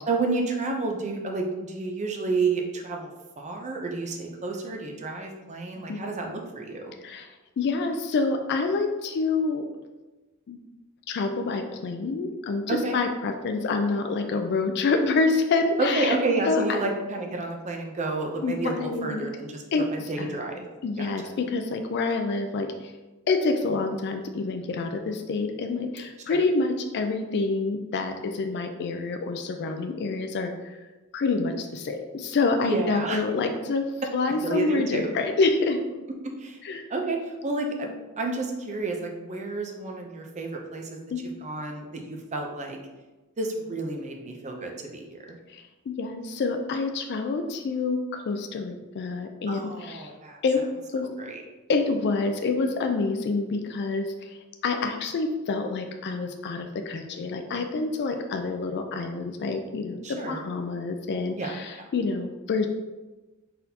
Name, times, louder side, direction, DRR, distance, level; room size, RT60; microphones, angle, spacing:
voice 1, 0.1-3.1 3.4-6.9 12.7-13.0 15.8-20.7 21.0-21.1 26.2-26.4 32.6-33.2 34.4-35.1 36.4-36.6 36.9-41.0 41.4-42.8 43.4-45.4 49.5-50.4 51.0-51.4 60.0-60.4 61.4-61.9, right 3 dB, 35° right, 2 dB, 0.6 m, -30 dB
voice 2, 7.6-9.6 10.5-10.6 11.1-16.2 16.5-16.9 18.4-19.3 19.7-19.9 20.2-20.4 20.8-22.9 23.3-30.8 31.1-33.9 34.1-35.8 36.6-36.8 41.1-41.2 45.5-50.1 50.4-50.6 50.9-51.1 51.7-54.4 54.6-62.7, left 3 dB, 50° left, 6 dB, 0.4 m, -27 dB
4.1 x 3.9 x 2.8 m, 1.2 s
head